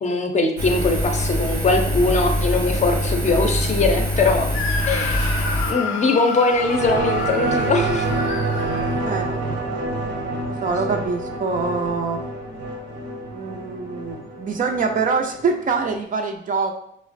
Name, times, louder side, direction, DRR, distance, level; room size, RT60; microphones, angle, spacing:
voice 1, 0.0-4.5 4.9-5.2 5.7-8.1, left 3 dB, 35° left, 4 dB, 0.5 m, -21 dB
Engine, 0.6-5.7, left 1 dB, 90° right, 0.7 m, -23 dB
Screaming, 4.5-9.4, left 4 dB, 85° left, 0.4 m, -30 dB
sound 1, 6.5-15.5 15.8-15.9, right 3 dB, 65° right, 0.9 m, -27 dB
voice 2, 9.0-9.6 10.5-12.2 13.3-16.7, right 4 dB, 40° right, 4 dB, 0.5 m, -24 dB
4.8 x 2.0 x 2.5 m, 0.73 s
cardioid pair, 90°, 20 cm